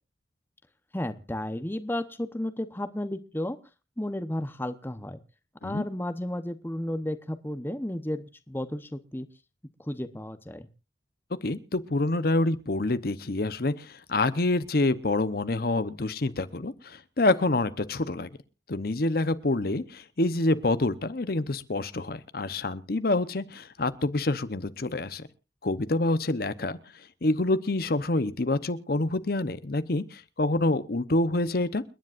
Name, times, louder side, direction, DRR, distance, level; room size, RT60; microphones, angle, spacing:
voice 1, 0.9-3.6 4.0-5.2 5.6-9.3 9.8-10.7, left 1 dB, 10° left, 11 dB, 0.9 m, -33 dB
voice 2, 11.4-18.3 18.7-25.3 25.6-26.8 27.2-31.8, left 2 dB, 55° left, 14 dB, 0.9 m, -27 dB
29.5 x 10.5 x 2.5 m, 0.30 s
head